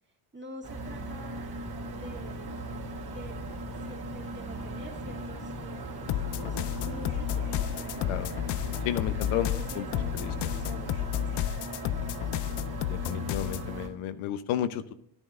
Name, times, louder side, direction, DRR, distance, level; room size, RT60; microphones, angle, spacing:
voice 1, 0.3-1.5 1.9-2.6 3.1-3.4 3.8-8.1 9.5-11.4, right 1 dB, 20° right, 2 dB, 2.0 m, -47 dB
sound 1, 0.6-13.9, right 1 dB, 50° right, 2.7 m, -38 dB
sound 2, 6.1-13.7, left 12 dB, 60° left, 0.5 m, -32 dB
voice 2, 8.8-9.9 10.1-10.5 12.9-14.9, left 10 dB, 80° left, 11 dB, 0.9 m, -32 dB
11.0 x 10.0 x 2.5 m, 0.74 s
cardioid pair, 100°, 48 cm